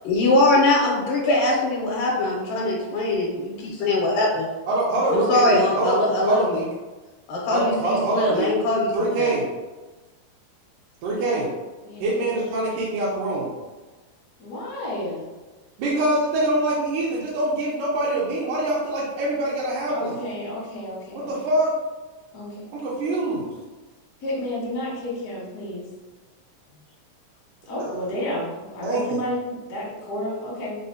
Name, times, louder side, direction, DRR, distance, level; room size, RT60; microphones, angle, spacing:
voice 1, 0.1-4.4 5.1-6.6 7.3-8.9 9.2-9.3, left 2 dB, 85° left, -3 dB, 2.2 m, -21 dB
voice 2, 4.7-6.7 7.5-8.5 8.9-9.5 11.0-11.5 12.0-13.5 15.8-20.2 21.3-21.7 22.7-23.5 27.8-27.9 28.8-29.2, right 1 dB, 80° right, -8 dB, 2.2 m, -24 dB
voice 3, 11.1-11.5 11.8-12.4 14.4-15.3 19.9-21.4 22.3-22.7 24.2-25.9 27.6-30.7, left 1 dB, 60° left, -7 dB, 1.0 m, -31 dB
5.5 x 2.0 x 2.6 m, 1.2 s
omnidirectional pair, 3.9 m